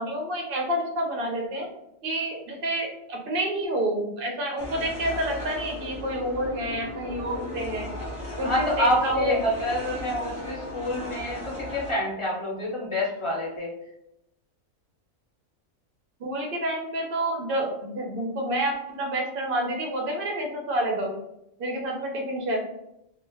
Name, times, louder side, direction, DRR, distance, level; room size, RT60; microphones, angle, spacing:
voice 1, 0.0-1.7 2.0-7.9 8.4-9.4 10.1-10.2 16.2-21.1 21.6-22.6, right 1 dB, 50° right, 0 dB, 0.8 m, -28 dB
sound 1, 4.6-11.9, left 1 dB, 5° right, 0.7 m, -36 dB
voice 2, 8.4-13.7, left 1 dB, 30° left, -4 dB, 0.7 m, -27 dB
2.4 x 2.1 x 3.3 m, 0.81 s
omnidirectional pair, 1.4 m